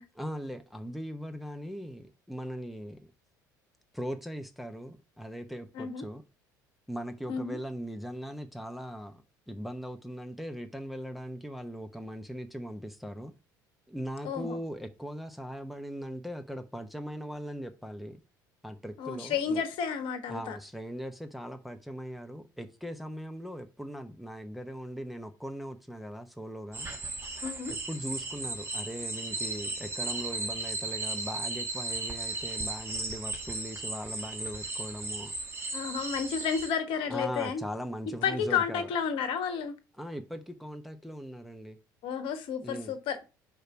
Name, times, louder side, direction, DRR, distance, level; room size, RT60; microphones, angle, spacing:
voice 1, 0.1-3.0 3.9-6.2 6.9-13.3 13.9-18.2 18.6-19.6 20.3-26.9 27.7-35.3 37.0-38.9 40.0-41.8 42.6-43.0, equal, ahead, 0.9 m, -39 dB
voice 2, 14.2-14.6 19.0-20.6 27.4-27.7 35.7-37.6 38.2-39.8 42.0-43.2, left 7 dB, 55° left, 1.2 m, -31 dB
sound 1, 26.7-36.7, right 3 dB, 25° right, 1.8 m, -36 dB
4.9 x 4.5 x 6.1 m
figure-of-eight pair, 60°, 11 cm